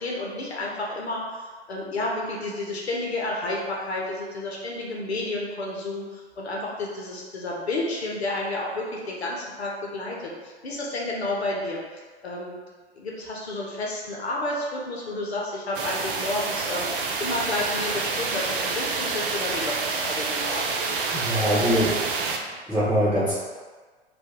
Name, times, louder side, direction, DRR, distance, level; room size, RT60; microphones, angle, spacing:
voice 1, 0.0-12.6 12.9-20.6, left 2 dB, 70° left, -3 dB, 0.7 m, -31 dB
sound 1, 15.7-22.4, right 4 dB, 55° right, 0.4 m, -28 dB
voice 2, 21.1-21.9 22.7-23.4, equal, 5° right, -13 dB, 1.2 m, -22 dB
2.7 x 2.3 x 3.5 m, 1.4 s
figure-of-eight pair, 100°, 33 cm